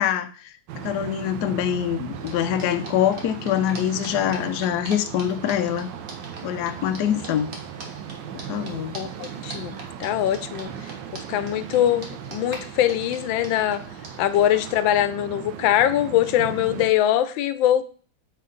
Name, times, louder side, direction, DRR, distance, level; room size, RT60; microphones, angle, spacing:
voice 1, 0.0-5.9 6.4-7.5 8.3-9.0, left 10 dB, 65° left, 8 dB, 1.1 m, -25 dB
sound 1, 0.7-16.9, right 9 dB, 75° right, 1.3 m, -38 dB
sound 2, 2.1-14.8, right 2 dB, 50° right, 1.7 m, -43 dB
voice 2, 8.9-13.8 14.2-17.8, left 11 dB, 90° left, 13 dB, 1.3 m, -23 dB
8.5 x 3.7 x 3.9 m, 0.41 s
omnidirectional pair, 2.1 m